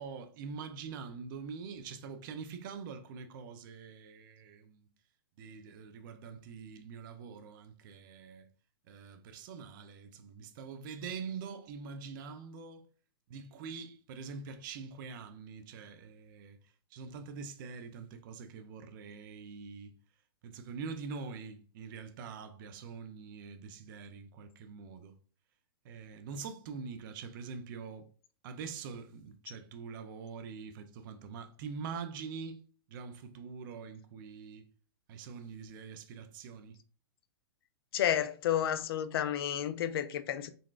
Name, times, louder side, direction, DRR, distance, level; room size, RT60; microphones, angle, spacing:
voice 1, 0.0-4.9 5.4-8.5 8.9-12.9 13.3-19.9 20.4-25.2 25.8-28.1 28.4-32.6 32.9-34.7 35.1-36.8, right 5 dB, 55° right, 0.5 m, -44 dB
voice 2, 37.9-40.5, left 10 dB, 65° left, 0.4 m, -31 dB
3.9 x 2.3 x 2.4 m
hypercardioid pair, 120°, 13 cm